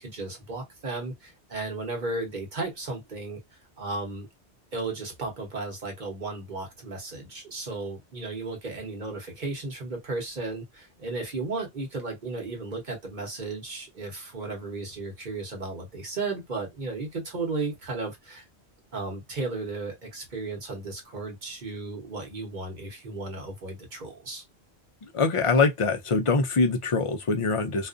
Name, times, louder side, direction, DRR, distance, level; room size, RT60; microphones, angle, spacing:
voice 1, 0.0-3.4 3.8-4.3 4.7-18.5 18.9-24.4, right 3 dB, 45° right, 1.0 m, -34 dB
voice 2, 25.1-27.9, left 4 dB, 60° left, 0.3 m, -23 dB
2.4 x 2.3 x 2.4 m
omnidirectional pair, 1.1 m